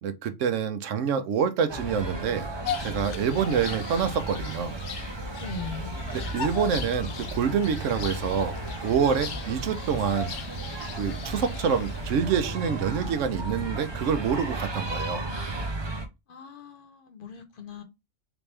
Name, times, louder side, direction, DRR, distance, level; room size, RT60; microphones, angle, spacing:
voice 1, 0.0-2.5 2.8-4.8 6.1-8.6 8.8-10.3 11.0-15.3, right 7 dB, 85° right, 1.0 m, -27 dB
sound 1, 1.7-16.1, right 2 dB, 30° right, 0.5 m, -34 dB
Bird vocalization bird call bird song, 2.6-12.3, left 6 dB, 75° left, 0.9 m, -39 dB
voice 2, 5.4-6.0 16.3-17.8, left 4 dB, 50° left, 0.9 m, -39 dB
3.5 x 3.0 x 3.2 m
omnidirectional pair, 1.3 m